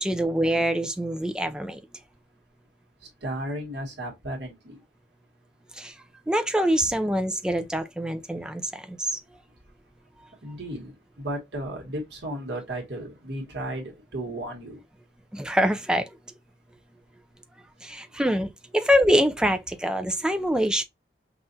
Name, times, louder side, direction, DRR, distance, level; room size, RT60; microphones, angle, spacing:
voice 1, 0.0-1.8 5.8-5.9 6.3-9.2 15.3-16.1 17.8-20.8, equal, 5° right, 0.3 m, -24 dB
voice 2, 3.2-4.8 10.4-14.8, right 1 dB, 80° right, 1.5 m, -34 dB
5.4 x 2.4 x 2.6 m
head